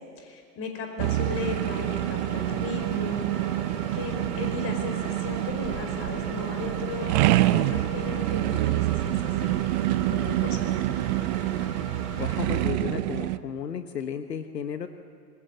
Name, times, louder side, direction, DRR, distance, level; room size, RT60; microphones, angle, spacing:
voice 1, 0.2-3.5 3.9-9.6 10.1-10.9, left 4 dB, 25° left, 5 dB, 4.9 m, -36 dB
sound 1, 1.0-13.4, right 16 dB, 30° right, 0.5 m, -27 dB
Engine, 1.0-12.7, right 5 dB, 70° right, 4.6 m, -37 dB
voice 2, 12.2-14.9, left 7 dB, 75° left, 8 dB, 1.3 m, -33 dB
26.5 x 22.0 x 7.9 m, 2.3 s
figure-of-eight pair, 110°, 49 cm